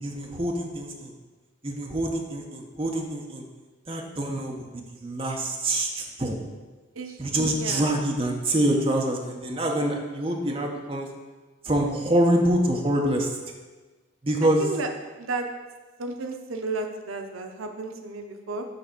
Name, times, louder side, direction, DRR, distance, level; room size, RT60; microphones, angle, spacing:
voice 1, 0.0-1.1 1.6-3.4 3.9-6.4 7.2-11.1 11.6-13.3 14.2-14.7, right 1 dB, 25° right, 1 dB, 0.8 m, -25 dB
voice 2, 7.0-7.8 14.4-14.9 15.2-15.5 16.0-18.7, right 3 dB, 80° right, 5 dB, 0.6 m, -33 dB
6.7 x 4.0 x 6.0 m, 1.3 s
head